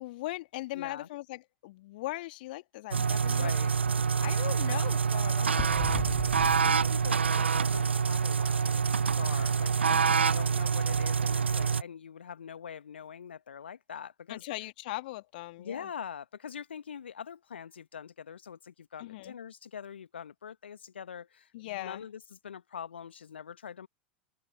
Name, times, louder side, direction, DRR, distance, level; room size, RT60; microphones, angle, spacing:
voice 1, 0.0-3.5 4.2-6.0 9.9-10.4 14.3-15.9 19.0-19.4 21.5-22.0, left 18 dB, 55° left, 2.1 m, -39 dB
voice 2, 0.7-1.1 3.4-3.7 4.6-4.8 6.4-14.4 15.6-23.9, left 7 dB, 70° left, 1.5 m, -43 dB
sound 1, 2.9-11.8, right 6 dB, 80° right, 0.4 m, -26 dB
sound 2, 5.6-8.3, left 12 dB, 35° left, 1.8 m, -40 dB
figure-of-eight pair, 85°, 6 cm